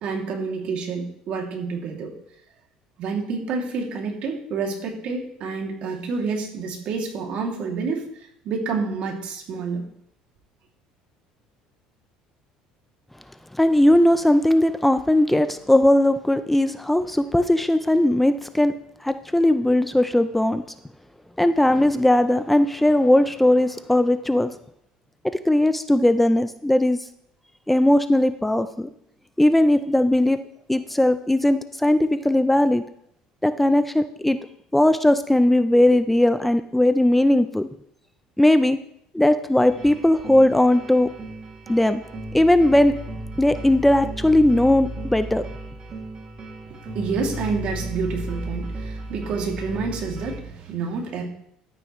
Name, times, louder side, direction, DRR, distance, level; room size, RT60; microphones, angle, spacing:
voice 1, 0.0-2.1 3.0-8.1 8.4-9.9 46.9-51.2, right 4 dB, 60° right, 1 dB, 2.6 m, -28 dB
voice 2, 13.5-18.7 19.0-20.6 21.4-24.5 25.2-27.0 27.7-28.9 29.4-30.4 30.7-32.8 33.4-34.4 34.7-37.7 38.4-38.8 39.1-41.1 41.7-42.0 42.3-43.0 43.4-45.4, left 1 dB, 5° left, 10 dB, 0.5 m, -18 dB
sound 1, 39.6-50.4, right 1 dB, 40° right, 2.4 m, -35 dB
12.5 x 9.0 x 3.1 m, 0.71 s
supercardioid pair, 100°, 2 cm